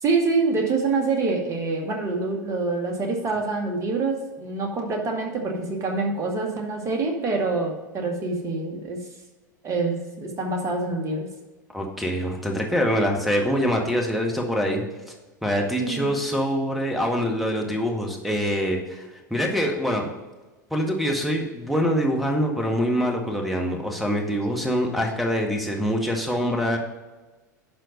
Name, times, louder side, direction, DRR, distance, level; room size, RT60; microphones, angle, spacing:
voice 1, 0.0-9.0 9.6-11.3 15.8-16.1, right 3 dB, 30° right, 2 dB, 2.1 m, -26 dB
voice 2, 11.7-14.8 15.4-20.1 20.7-26.8, equal, ahead, 1 dB, 1.8 m, -24 dB
11.5 x 4.4 x 5.3 m, 1.2 s
figure-of-eight pair, 85°, 10 cm